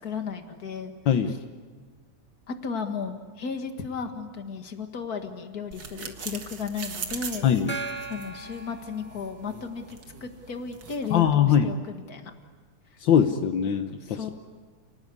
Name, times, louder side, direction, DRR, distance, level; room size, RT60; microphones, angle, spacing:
voice 1, 0.0-0.9 1.3-1.4 2.5-7.5 8.1-12.3 14.0-14.3, left 5 dB, 35° left, 6 dB, 1.9 m, -34 dB
sound 1, 5.7-11.2, right 5 dB, 45° right, 1.8 m, -41 dB
Gong, 7.7-9.7, right 3 dB, 5° left, 1.3 m, -38 dB
voice 2, 11.1-11.7 13.0-14.3, left 8 dB, 70° left, 7 dB, 1.1 m, -22 dB
29.5 x 19.0 x 9.7 m, 1.5 s
omnidirectional pair, 3.5 m